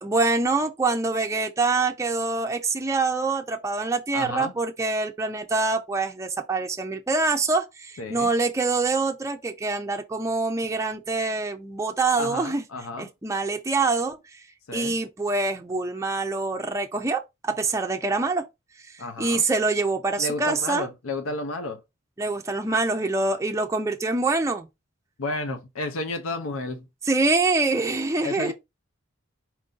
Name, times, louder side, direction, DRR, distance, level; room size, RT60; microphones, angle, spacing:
voice 1, 0.0-12.6 13.0-14.4 14.7-18.4 19.2-20.9 22.2-24.7 27.0-28.5, right 3 dB, 15° right, 0.4 m, -25 dB
voice 2, 4.1-4.5 8.0-8.3 12.2-13.1 14.7-15.0 19.0-19.4 20.2-21.8 25.2-26.9 28.2-28.5, left 2 dB, 85° left, 0.6 m, -32 dB
4.5 x 2.6 x 3.8 m
head